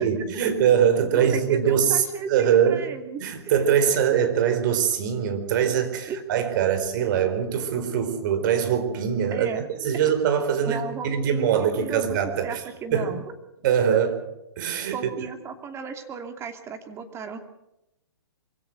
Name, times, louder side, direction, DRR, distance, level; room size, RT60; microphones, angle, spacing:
voice 1, 0.0-2.8 3.2-12.6 12.9-13.1 13.6-14.1 14.6-15.1, right 8 dB, 50° right, 9 dB, 4.4 m, -23 dB
voice 2, 1.1-3.2 6.1-6.2 6.6-6.8 9.3-9.7 10.6-12.2 12.4-13.2 13.9-14.1 14.9-17.4, right 6 dB, 20° right, 7 dB, 2.7 m, -35 dB
23.5 x 16.5 x 7.9 m, 0.88 s
hypercardioid pair, 130°, 14 cm